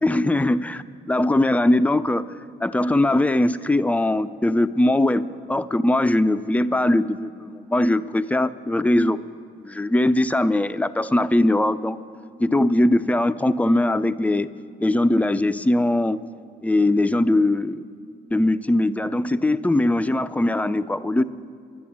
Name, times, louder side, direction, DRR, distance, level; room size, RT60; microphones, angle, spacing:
voice 1, 0.0-2.3 2.6-9.2 9.6-12.0 12.4-14.5 14.8-16.2 16.6-17.8 18.3-21.2, left 1 dB, 5° left, 13 dB, 0.4 m, -21 dB
12.0 x 10.0 x 8.5 m, 2.4 s
cardioid pair, 90°, 20 cm